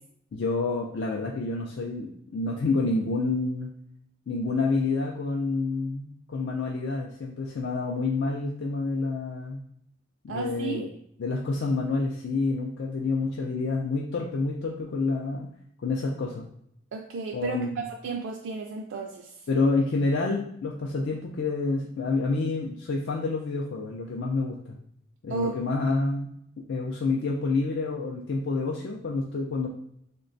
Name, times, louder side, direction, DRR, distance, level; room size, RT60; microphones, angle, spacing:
voice 1, 0.3-3.7 4.3-9.6 10.2-10.9 11.2-15.5 15.8-16.5 17.3-17.8 19.5-24.8 25.2-26.3 26.7-29.7, left 3 dB, 65° left, -1 dB, 0.4 m, -28 dB
voice 2, 10.3-10.9 16.9-19.3 25.3-25.6, right 4 dB, 75° right, 1 dB, 0.3 m, -33 dB
3.1 x 2.2 x 3.8 m, 0.70 s
head